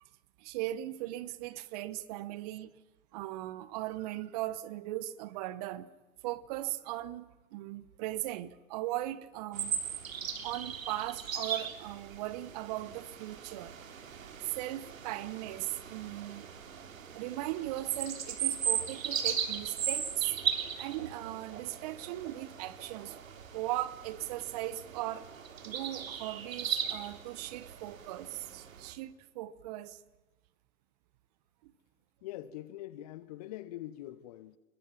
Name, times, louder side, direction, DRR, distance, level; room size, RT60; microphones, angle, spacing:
voice 1, 0.4-2.7 3.1-5.9 6.2-7.2 7.5-9.7 10.4-13.8 14.4-16.5 17.1-20.3 20.7-23.2 23.5-25.3 25.6-30.0 31.6-31.7, right 15 dB, 25° right, 1.0 m, -38 dB
sound 1, 9.5-28.9, right 7 dB, 60° right, 3.7 m, -38 dB
voice 2, 32.2-34.6, left 14 dB, 25° left, 0.8 m, -43 dB
30.0 x 21.5 x 7.4 m
hypercardioid pair, 135°, 45 cm